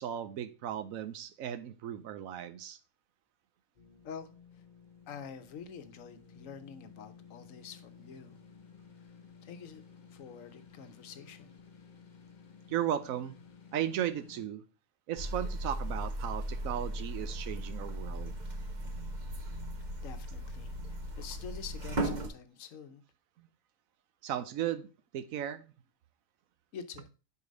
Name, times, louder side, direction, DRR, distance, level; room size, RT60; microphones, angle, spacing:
voice 1, 0.0-2.8 12.7-13.4 13.7-14.6 15.1-18.3 24.2-25.6, right 10 dB, 80° right, 1.1 m, -36 dB
sound 1, 3.8-14.5, left 6 dB, 45° left, 0.7 m, -55 dB
voice 2, 5.1-8.4 9.4-9.8 10.1-11.5 20.0-23.0 26.7-27.1, left 6 dB, 75° left, 1.2 m, -47 dB
sound 2, 15.2-22.3, right 1 dB, 40° right, 0.9 m, -37 dB
5.2 x 4.9 x 5.1 m
omnidirectional pair, 1.4 m